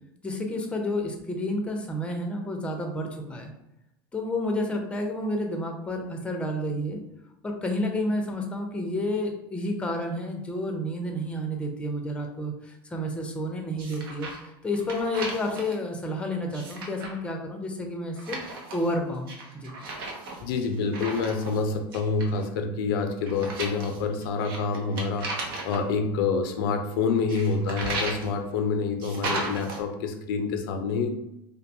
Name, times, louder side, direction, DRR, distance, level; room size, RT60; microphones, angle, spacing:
voice 1, 0.2-3.5 4.1-7.0 7.4-14.3 14.6-19.7, left 1 dB, 10° left, 2 dB, 0.5 m, -30 dB
sound 1, 13.8-14.5 14.7-15.7 16.4-17.2 18.2-18.9 19.3-21.6 21.9-22.4 23.3-25.8 27.3-28.3 29.0-29.8, right 2 dB, 85° right, 0.6 m, -35 dB
voice 2, 20.4-31.1, left 4 dB, 80° left, 5 dB, 0.4 m, -27 dB
2.5 x 2.2 x 2.6 m, 0.85 s
supercardioid pair, 110°, 12 cm